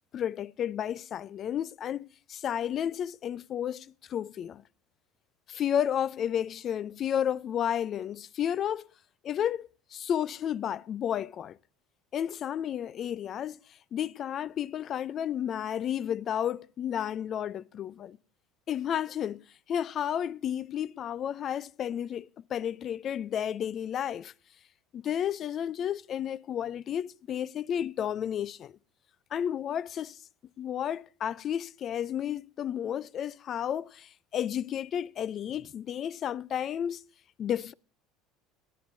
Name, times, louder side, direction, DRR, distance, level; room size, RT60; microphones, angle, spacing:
voice 1, 0.1-4.6 5.5-8.9 9.2-11.6 12.1-13.6 13.9-18.2 18.7-24.3 24.9-28.8 29.3-30.2 30.6-37.0 37.4-37.7, left 9 dB, 40° left, 0.4 m, -32 dB
17.5 x 9.5 x 2.6 m
supercardioid pair, 115°, 0 cm